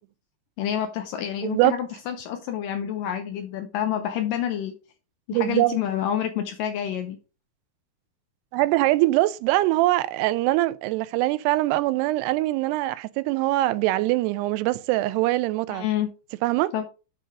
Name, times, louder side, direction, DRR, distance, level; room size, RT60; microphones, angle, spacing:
voice 1, 0.6-4.7 5.3-7.2 15.7-16.1 16.7-16.8, left 10 dB, 85° left, 2.0 m, -28 dB
voice 2, 1.4-1.8 5.3-5.8 8.5-15.9 16.4-16.7, right 17 dB, 85° right, 2.6 m, -23 dB
9.4 x 3.9 x 4.8 m
omnidirectional pair, 4.8 m